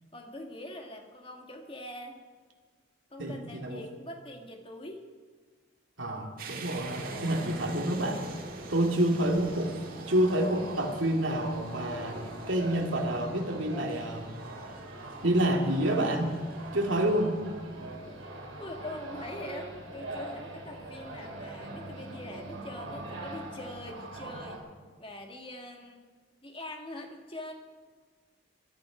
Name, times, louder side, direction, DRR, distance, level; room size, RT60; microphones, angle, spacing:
voice 1, 0.1-2.2 3.1-5.1 18.6-24.6 25.0-26.1 26.4-27.5, left 1 dB, 25° left, 3 dB, 1.9 m, -43 dB
voice 2, 3.2-3.8 6.0-8.2 8.7-9.7 10.1-14.3 15.2-16.4 16.7-17.4, right 1 dB, 75° right, 2 dB, 2.4 m, -28 dB
sound 1, 6.4-19.1, right 4 dB, 45° right, 1.8 m, -49 dB
sound 2, 6.7-24.6, right 1 dB, 90° right, 4.2 m, -43 dB
20.5 x 12.5 x 5.1 m, 1.5 s
head